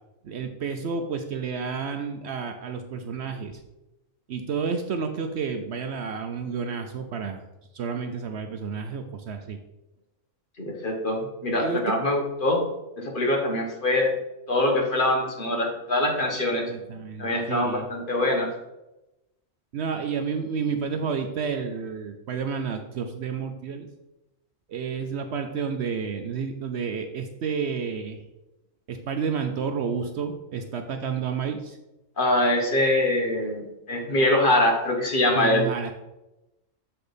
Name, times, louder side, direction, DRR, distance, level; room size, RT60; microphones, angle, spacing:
voice 1, 0.2-3.6 4.3-7.4 7.7-9.6 11.6-12.0 16.7-17.8 19.7-23.9 24.7-28.2 28.9-31.8 35.3-35.9, right 6 dB, 65° right, 6 dB, 0.8 m, -30 dB
voice 2, 10.6-12.6 13.0-14.2 14.5-16.6 17.2-18.5 32.2-35.7, left 1 dB, 40° left, 1 dB, 1.3 m, -23 dB
6.9 x 4.3 x 5.0 m, 0.97 s
omnidirectional pair, 1.4 m